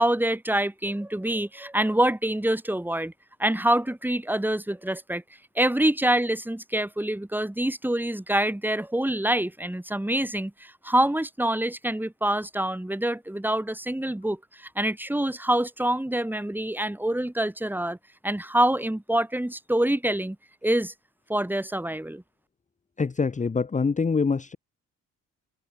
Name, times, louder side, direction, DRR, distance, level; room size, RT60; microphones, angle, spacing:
voice 1, 0.0-3.1 3.4-5.2 5.6-18.0 18.2-20.4 20.6-20.9 21.3-22.2, right 1 dB, 5° right, 4.4 m, -26 dB
voice 2, 23.0-24.6, left 4 dB, 25° left, 1.3 m, -25 dB
cardioid pair, 90°, 30 cm